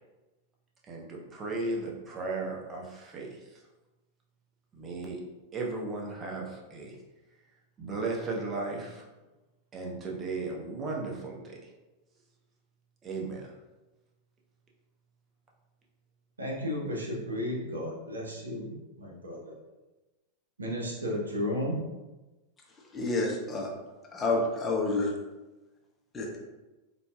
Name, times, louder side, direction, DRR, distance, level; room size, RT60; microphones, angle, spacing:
voice 1, 0.9-3.6 4.7-5.2 5.5-6.9 7.8-9.0 9.7-11.6 13.0-13.4, right 3 dB, 25° right, -2 dB, 0.7 m, -35 dB
voice 2, 16.4-19.5 20.6-21.8, left 1 dB, 75° right, -2 dB, 0.6 m, -33 dB
voice 3, 22.9-23.7 24.1-25.1 26.1-26.4, left 2 dB, 20° left, -1 dB, 0.6 m, -28 dB
3.9 x 2.2 x 2.3 m, 1.1 s
figure-of-eight pair, 90°, 0 cm